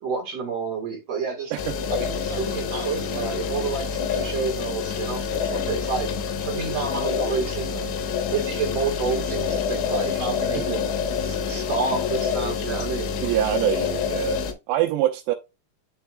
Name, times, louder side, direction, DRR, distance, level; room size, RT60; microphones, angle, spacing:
voice 1, 0.0-1.5 1.9-6.1 6.4-8.0 8.3-13.1, right 4 dB, 50° right, 2.1 m, -29 dB
sound 1, 1.6-14.5, left 6 dB, 90° left, 3.3 m, -27 dB
voice 2, 13.2-14.4 14.7-15.4, right 14 dB, 90° right, 2.9 m, -24 dB
10.5 x 4.3 x 2.3 m
omnidirectional pair, 4.8 m